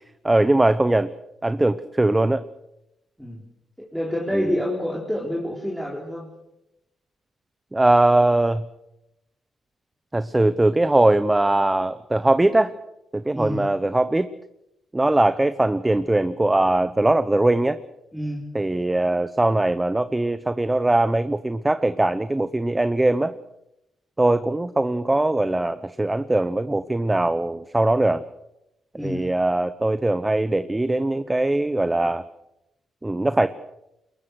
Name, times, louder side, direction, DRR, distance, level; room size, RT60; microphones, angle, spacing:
voice 1, 0.2-1.1 1.4-2.4 4.3-4.5 7.7-8.6 10.1-12.7 13.1-14.3 14.9-17.8 18.5-23.3 24.2-28.2 29.0-32.2 33.0-33.5, right 2 dB, 15° right, 12 dB, 0.9 m, -21 dB
voice 2, 3.8-6.3 13.3-13.7 18.1-18.5 29.0-29.3, equal, ahead, -3 dB, 4.0 m, -28 dB
23.0 x 21.0 x 6.5 m, 0.88 s
cardioid pair, 75°, 0 cm